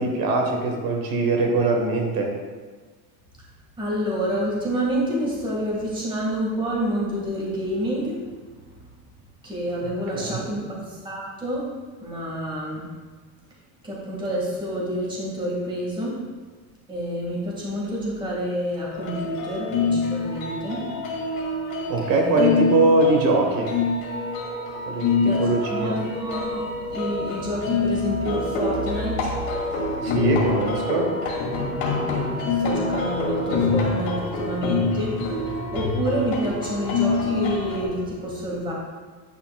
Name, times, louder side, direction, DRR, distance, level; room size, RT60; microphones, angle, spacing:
voice 1, 0.0-2.3 10.1-10.4 21.9-23.7 24.9-26.0 30.0-31.1, right 2 dB, 50° right, 2 dB, 1.3 m, -22 dB
voice 2, 3.8-8.2 9.4-11.7 12.0-12.8 13.8-16.1 16.9-20.8 22.1-22.5 25.2-25.4 25.6-29.4 29.9-30.1 32.2-38.7, equal, 10° right, -5 dB, 1.7 m, -28 dB
sound 1, 18.9-37.8, left 3 dB, 70° left, 2.1 m, -26 dB
10.0 x 5.8 x 2.3 m, 1.4 s
cardioid pair, 145°, 45 cm